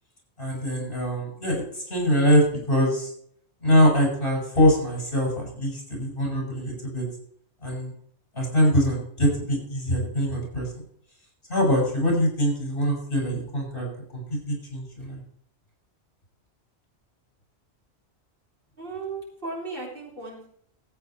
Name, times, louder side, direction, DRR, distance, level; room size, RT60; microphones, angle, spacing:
voice 1, 0.4-3.1 3.6-7.0 7.6-7.9 8.3-10.7 11.5-13.9 14.1-15.2, equal, 50° left, -1 dB, 6.3 m, -23 dB
voice 2, 18.8-20.5, right 3 dB, 55° right, -3 dB, 3.9 m, -35 dB
14.0 x 8.8 x 4.5 m, 0.64 s
omnidirectional pair, 1.1 m